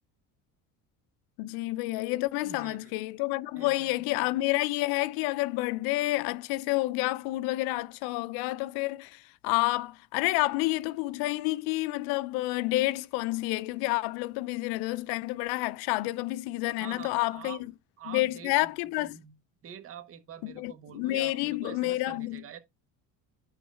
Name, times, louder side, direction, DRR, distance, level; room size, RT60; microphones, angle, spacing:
voice 1, 1.4-17.6 18.1-19.2 20.4-22.4, left 19 dB, 90° left, 0.6 m, -29 dB
voice 2, 2.4-3.0 3.5-4.4 16.7-17.6 18.0-19.3 19.6-22.6, right 9 dB, 40° right, 1.5 m, -46 dB
11.0 x 3.9 x 4.4 m
cardioid pair, 165°, 36 cm